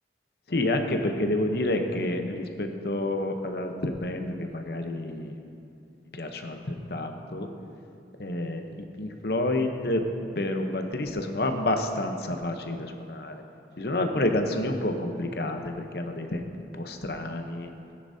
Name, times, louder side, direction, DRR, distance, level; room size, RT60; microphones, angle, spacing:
voice 1, 0.5-5.3 6.1-7.5 8.2-10.0 10.4-13.4 13.8-16.4 16.7-17.7, left 1 dB, 60° left, 5 dB, 0.8 m, -29 dB
16.5 x 9.8 x 2.7 m, 2.8 s
head